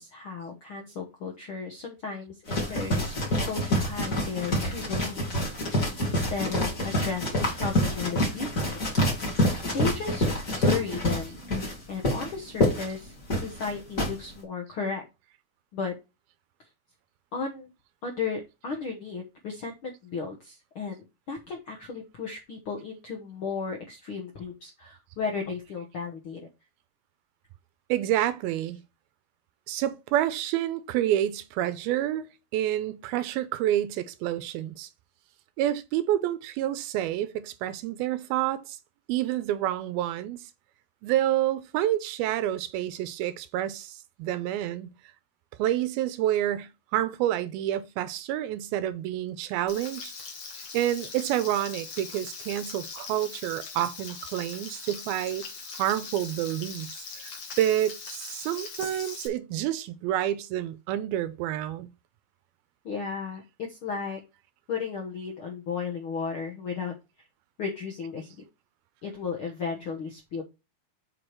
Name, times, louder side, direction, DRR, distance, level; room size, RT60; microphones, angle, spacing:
voice 1, 0.0-10.3 10.6-11.5 11.9-15.0 15.7-15.9 17.3-17.7 18.0-26.4 28.1-28.3 62.8-64.2 64.7-66.9 67.6-68.3 69.0-70.4, left 5 dB, 70° left, 1.2 m, -35 dB
sound 1, 2.5-14.1, equal, 25° left, 3.1 m, -27 dB
voice 2, 27.9-28.8 29.7-32.3 32.5-34.9 35.6-38.8 39.1-40.4 41.0-44.9 45.6-50.1 50.7-55.5 55.8-57.3 57.6-61.9, right 12 dB, 90° right, 2.7 m, -28 dB
Frying (food), 49.7-59.3, left 5 dB, 50° left, 2.7 m, -41 dB
8.0 x 4.8 x 4.6 m
omnidirectional pair, 4.3 m